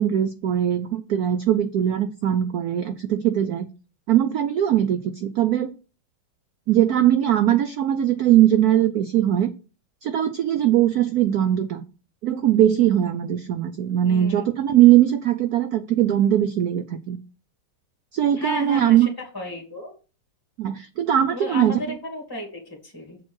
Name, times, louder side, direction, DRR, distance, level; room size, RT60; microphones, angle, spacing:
voice 1, 0.0-3.7 4.1-5.7 6.7-9.5 10.0-11.8 12.2-17.2 18.1-19.1 20.6-22.0, right 11 dB, 80° right, 10 dB, 0.8 m, -20 dB
voice 2, 14.0-14.5 18.4-19.1 19.3-19.9 21.3-23.2, left 1 dB, 10° left, -1 dB, 1.9 m, -34 dB
7.4 x 4.4 x 6.0 m, 0.34 s
omnidirectional pair, 2.3 m